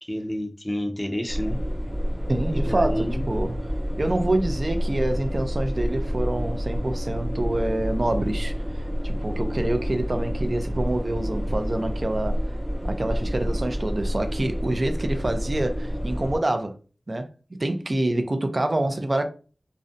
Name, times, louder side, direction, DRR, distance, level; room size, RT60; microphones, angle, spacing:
voice 1, 0.0-1.6 2.5-3.3, equal, 10° left, 0.5 m, -29 dB
sound 1, 1.3-16.4, equal, 15° right, 1.0 m, -28 dB
voice 2, 2.3-3.7 4.0-12.4 12.8-16.7 17.1-17.3 17.6-19.3, right 1 dB, 50° right, 0.4 m, -26 dB
2.5 x 2.1 x 2.5 m
wide cardioid pair, 50°, 0 cm